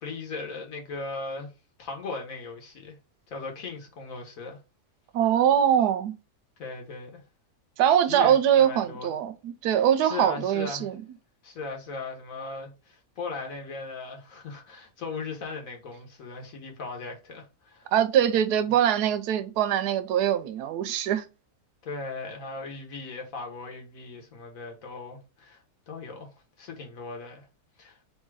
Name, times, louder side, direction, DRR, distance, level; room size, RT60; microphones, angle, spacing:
voice 1, 0.0-1.5 1.8-2.9 3.3-4.6 6.6-7.2 8.1-9.1 9.8-10.9 11.4-17.9 21.8-25.6 25.9-26.3 26.6-27.4 27.8-28.0, left 4 dB, 65° left, 1.4 m, -38 dB
voice 2, 5.1-6.1 7.8-11.0 17.9-21.3, right 10 dB, 90° right, 1.1 m, -23 dB
3.4 x 2.7 x 4.6 m
omnidirectional pair, 1.6 m